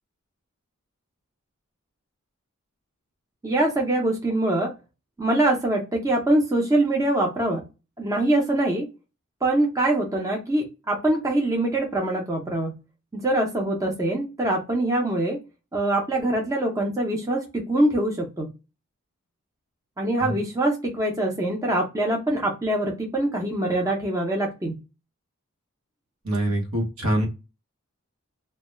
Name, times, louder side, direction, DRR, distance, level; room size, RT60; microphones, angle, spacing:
voice 1, 3.4-4.7 5.2-7.6 8.0-8.9 9.4-12.8 13.1-15.4 15.7-18.5 20.0-24.8, right 1 dB, 15° right, -1 dB, 0.5 m, -24 dB
voice 2, 26.2-27.3, right 1 dB, 85° right, 1 dB, 0.9 m, -24 dB
2.2 x 2.0 x 3.0 m, 0.27 s
head